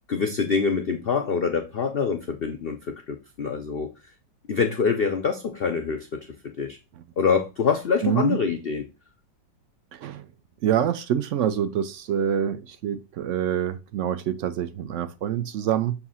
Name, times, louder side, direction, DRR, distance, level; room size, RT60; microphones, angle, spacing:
voice 1, 0.1-2.8 3.1-3.9 4.5-6.2 6.6-6.8 7.2-8.9, left 5 dB, 70° left, 0.5 m, -25 dB
voice 2, 8.0-8.4 9.9-10.2 10.6-15.9, right 9 dB, 80° right, 0.6 m, -26 dB
6.9 x 2.8 x 5.5 m
omnidirectional pair, 2.0 m